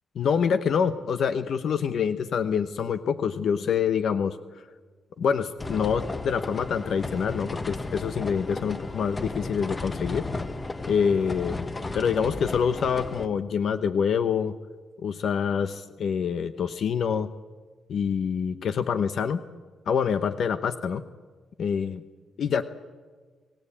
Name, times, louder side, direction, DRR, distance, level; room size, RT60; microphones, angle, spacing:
voice 1, 0.1-4.4 5.2-10.3 10.9-11.7 11.9-14.5 15.0-17.3 17.9-19.4 19.9-21.0 21.6-22.0 22.4-22.6, left 7 dB, 60° left, 11 dB, 0.9 m, -26 dB
sound 1, 5.6-13.3, left 2 dB, 20° left, 1.2 m, -34 dB
28.0 x 16.5 x 8.6 m, 1.5 s
cardioid pair, 115°, 0 cm